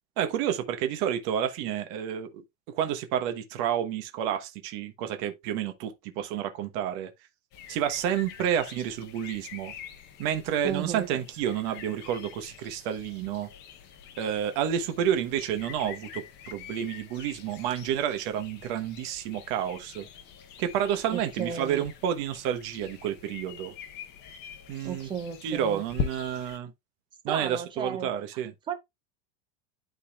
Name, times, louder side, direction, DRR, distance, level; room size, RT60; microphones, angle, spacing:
voice 1, 0.2-2.3 2.7-7.1 7.7-9.7 10.2-13.5 14.2-20.1 20.6-23.7 24.7-25.1 25.4-26.7 27.2-28.5, right 9 dB, 40° right, 1.1 m, -30 dB
sound 1, 7.5-26.6, left 8 dB, 25° left, 0.8 m, -43 dB
voice 2, 10.6-11.1 21.1-21.8 24.8-25.8 27.3-28.1 28.7-28.8, right 7 dB, 15° right, 0.6 m, -34 dB
11.5 x 4.0 x 2.3 m
supercardioid pair, 165°, 38 cm